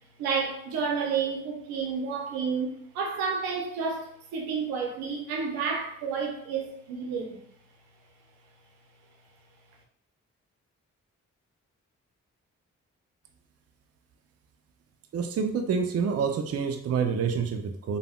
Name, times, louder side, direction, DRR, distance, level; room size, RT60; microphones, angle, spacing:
voice 1, 0.2-7.4, right 5 dB, 85° right, 1 dB, 0.6 m, -30 dB
voice 2, 15.1-18.0, right 6 dB, 45° right, 5 dB, 0.5 m, -27 dB
3.5 x 2.1 x 2.2 m, 0.69 s
hypercardioid pair, 40°, 35 cm